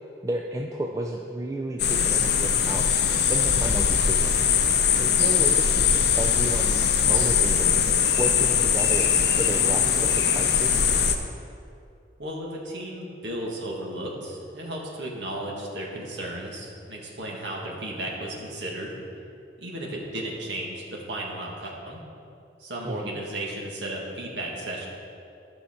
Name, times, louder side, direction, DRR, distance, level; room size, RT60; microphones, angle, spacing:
voice 1, 0.2-4.4 5.0-5.9 6.1-9.1 9.3-10.9 22.8-23.2, right 1 dB, 15° right, 1 dB, 0.3 m, -32 dB
sound 1, 1.8-11.2, left 7 dB, 65° left, 0.6 m, -21 dB
voice 2, 12.2-18.9 19.6-22.0 22.6-24.9, right 1 dB, 80° right, -2 dB, 1.7 m, -34 dB
12.5 x 5.7 x 4.3 m, 2.6 s
head